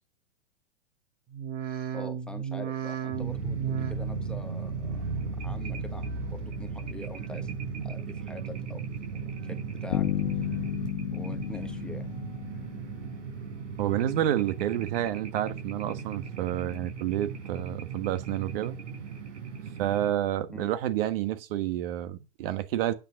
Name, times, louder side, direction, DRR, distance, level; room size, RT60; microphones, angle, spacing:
sound 1, 1.3-6.6 6.9-7.5 8.0-8.7 9.1-9.8 10.2-10.9 11.3-11.9 12.4-12.5, right 9 dB, 25° right, 1.1 m, -38 dB
voice 1, 1.9-5.1 5.4-7.5 7.8-8.8 9.1-10.1 11.1-12.1 20.5-20.7, left 2 dB, ahead, 1.1 m, -44 dB
sound 2, 3.1-20.1, right 5 dB, 75° right, 4.8 m, -36 dB
sound 3, 9.9-13.6, left 14 dB, 70° left, 1.3 m, -33 dB
voice 2, 13.8-18.8 19.8-22.9, right 12 dB, 50° right, 1.5 m, -29 dB
9.0 x 6.2 x 6.4 m
hypercardioid pair, 140°, 36 cm